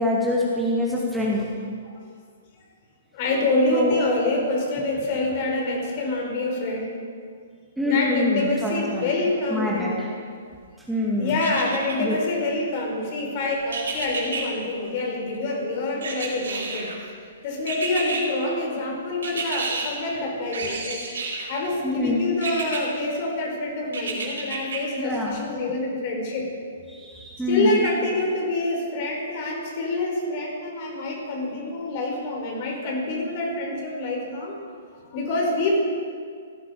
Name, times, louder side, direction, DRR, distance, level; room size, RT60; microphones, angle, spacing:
voice 1, 0.0-1.4 3.7-4.0 7.8-9.1 9.5-10.1 10.9-11.4 12.0-12.2 21.8-22.2 25.0-25.4 26.9-27.7, left 2 dB, 5° right, -5 dB, 2.5 m, -25 dB
voice 2, 3.1-7.0 7.8-10.1 11.2-16.9 17.4-21.0 21.5-26.5 27.5-34.5 35.1-35.8, left 2 dB, 40° left, -1 dB, 4.8 m, -26 dB
sound 1, 11.4-12.2 13.7-14.4 16.0-17.0 17.7-18.2 19.2-19.9 20.5-21.5 22.4-22.8 23.9-24.8 25.3-25.4, right 4 dB, 65° right, 4.9 m, -30 dB
17.0 x 15.0 x 5.2 m, 2.1 s
figure-of-eight pair, 120°, 0 cm